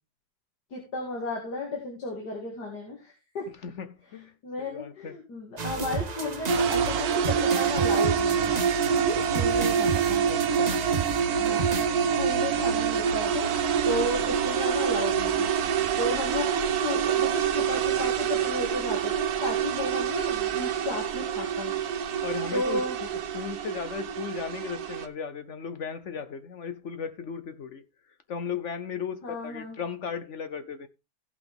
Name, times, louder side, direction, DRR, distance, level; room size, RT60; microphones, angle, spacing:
voice 1, 0.7-3.5 4.4-8.6 8.9-10.3 11.4-11.7 12.1-13.5 13.9-15.5 16.0-21.7 22.5-23.0 29.2-29.8, left 2 dB, 85° left, 2.7 m, -33 dB
voice 2, 3.6-5.1 9.1-9.2 10.3-10.8 12.1-12.3 22.2-27.8 28.3-30.9, left 7 dB, 55° left, 0.9 m, -36 dB
sound 1, 5.6-11.9, right 5 dB, 30° right, 0.8 m, -33 dB
sound 2, 6.5-25.1, right 7 dB, 70° right, 1.3 m, -26 dB
16.0 x 5.8 x 3.5 m
omnidirectional pair, 1.7 m